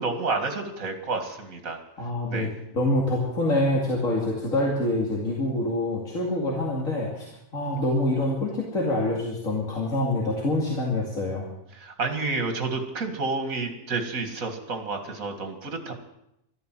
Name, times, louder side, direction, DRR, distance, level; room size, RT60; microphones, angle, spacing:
voice 1, 0.0-1.8 2.3-2.5 11.7-15.9, right 3 dB, 75° right, 6 dB, 2.4 m, -30 dB
voice 2, 2.0-7.3 7.5-11.5, left 1 dB, 70° left, -3 dB, 2.9 m, -26 dB
13.0 x 12.5 x 7.6 m, 0.82 s
omnidirectional pair, 1.4 m